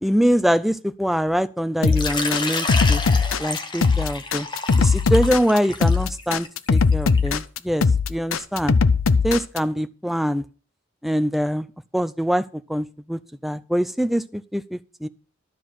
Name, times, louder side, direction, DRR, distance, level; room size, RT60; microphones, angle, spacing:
voice 1, 0.0-3.0 3.4-4.5 4.8-7.8 8.1-8.8 9.2-10.4 11.0-11.7 11.9-15.1, equal, ahead, 12 dB, 0.4 m, -24 dB
sound 1, 1.8-9.6, left 4 dB, 85° left, 0.6 m, -19 dB
Water / Liquid, 1.9-7.4, left 3 dB, 25° left, 1.0 m, -30 dB
12.5 x 4.5 x 7.6 m, 0.38 s
head